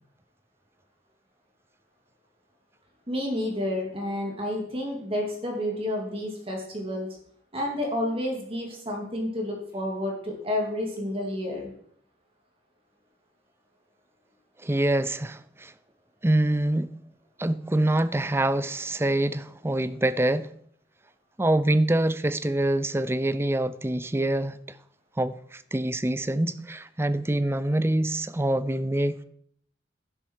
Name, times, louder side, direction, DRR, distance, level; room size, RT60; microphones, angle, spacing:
voice 1, 3.1-7.2 7.5-11.7, left 1 dB, 30° right, 2.7 m, -30 dB
voice 2, 14.6-15.7 16.2-16.9 17.4-20.5 21.4-24.8 25.2-29.2, right 1 dB, 15° right, 0.5 m, -25 dB
11.5 x 10.5 x 4.7 m
head